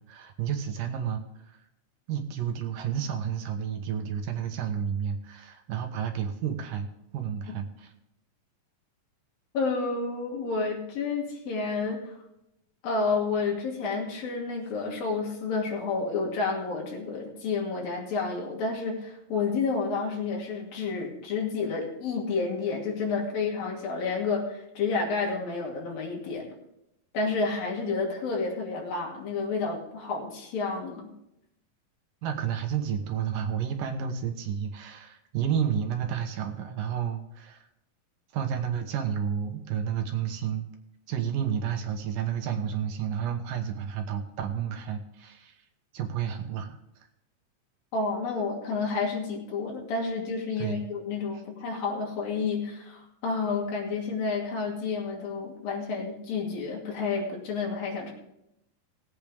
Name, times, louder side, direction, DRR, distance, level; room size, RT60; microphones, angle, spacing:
voice 1, 0.0-1.6 2.1-6.9 7.1-7.9 32.2-37.7 38.3-40.7 41.1-45.6 45.9-46.8 50.6-50.8, right 8 dB, 70° right, 5 dB, 2.7 m, -31 dB
voice 2, 9.5-12.1 12.8-26.5 27.1-31.1 47.9-58.1, left 4 dB, 75° left, -1 dB, 4.2 m, -30 dB
19.0 x 8.7 x 3.5 m, 0.85 s
omnidirectional pair, 4.1 m